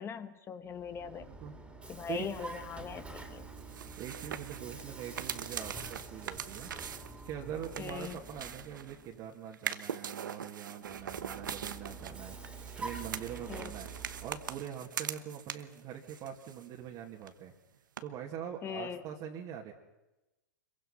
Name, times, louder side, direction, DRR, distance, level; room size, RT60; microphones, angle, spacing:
voice 1, 0.0-1.3 1.9-3.5 7.8-8.2 13.5-13.7 18.6-19.0, left 7 dB, 25° left, 11 dB, 1.2 m, -40 dB
Vehicle, 0.7-9.2 10.8-14.7, right 3 dB, 10° right, 3.0 m, -47 dB
voice 2, 1.0-1.5 2.1-2.4 4.0-6.7 7.2-13.9 14.2-17.5 18.0-19.7, right 9 dB, 40° right, -1 dB, 2.3 m, -43 dB
sound 1, 3.6-9.1 9.5-15.8 16.1-17.0 17.2-17.3 18.0-18.1, right 8 dB, 85° right, 1.2 m, -42 dB
26.5 x 23.0 x 5.8 m, 1.0 s
hypercardioid pair, 115°, 10 cm